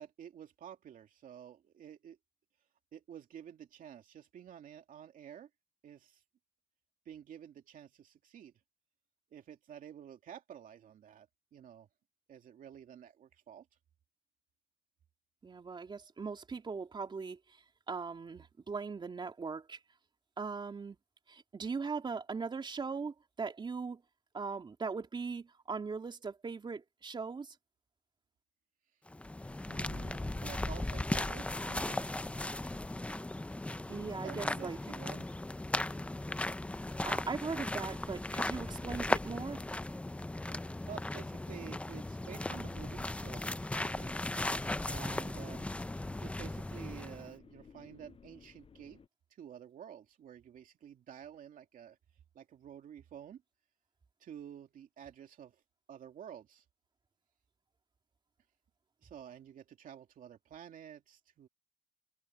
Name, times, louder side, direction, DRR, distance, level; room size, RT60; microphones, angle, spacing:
voice 1, 0.0-2.2 2.9-5.5 5.8-6.2 7.1-8.5 9.3-11.3 11.5-11.9 12.3-13.7 29.7-32.1 34.2-35.3 40.9-44.1 44.9-45.7 46.2-49.0 49.4-52.0 52.3-53.4 54.2-55.6 55.9-56.6 59.0-61.5, right 9 dB, 55° right, 2.7 m, -50 dB
voice 2, 15.4-19.8 20.4-21.0 21.3-24.0 24.3-27.5 33.9-34.8 37.0-39.6, right 5 dB, 30° right, 3.4 m, -39 dB
sound 1, 29.1-47.3, left 2 dB, 5° left, 0.6 m, -37 dB
sound 2, 44.0-49.1, left 6 dB, 35° left, 7.2 m, -59 dB
cardioid pair, 110°, 17 cm